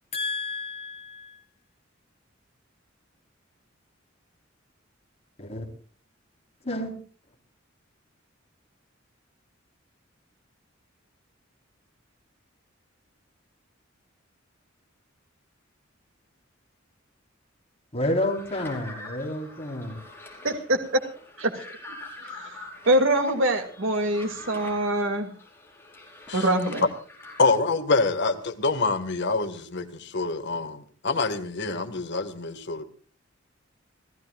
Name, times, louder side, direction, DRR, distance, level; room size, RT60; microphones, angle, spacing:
voice 1, 0.1-1.4 5.4-5.7 6.6-6.9 17.9-20.0, left 1 dB, 30° left, 4.3 m, -30 dB
sound 1, 18.1-27.6, left 2 dB, 10° left, 5.3 m, -45 dB
voice 2, 20.4-20.8 21.4-21.6 22.9-25.3 26.3-26.8, right 1 dB, 75° right, 2.6 m, -24 dB
voice 3, 27.4-32.8, left 3 dB, 60° left, 1.8 m, -26 dB
30.0 x 15.5 x 2.5 m
head